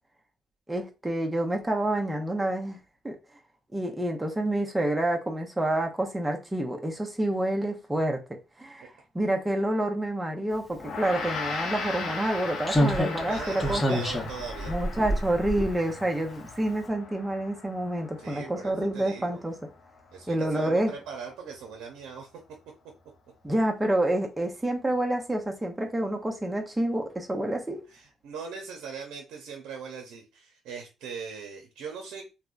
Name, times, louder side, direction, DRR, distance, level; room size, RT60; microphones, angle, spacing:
voice 1, 0.7-2.8 3.0-3.2 3.7-8.2 8.6-14.0 14.7-19.6 20.3-20.9 23.4-27.8, right 1 dB, 15° right, 0.7 m, -28 dB
Gong, 10.8-20.3, left 4 dB, 70° left, 0.7 m, -38 dB
Slam, 11.3-11.4 12.7-16.2 16.5-16.6, equal, 20° left, 0.9 m, -28 dB
voice 2, 13.0-14.7 18.2-19.4 20.1-22.3 27.9-32.3, right 5 dB, 90° right, 0.6 m, -40 dB
3.4 x 2.1 x 2.5 m
cardioid pair, 90°, 0 cm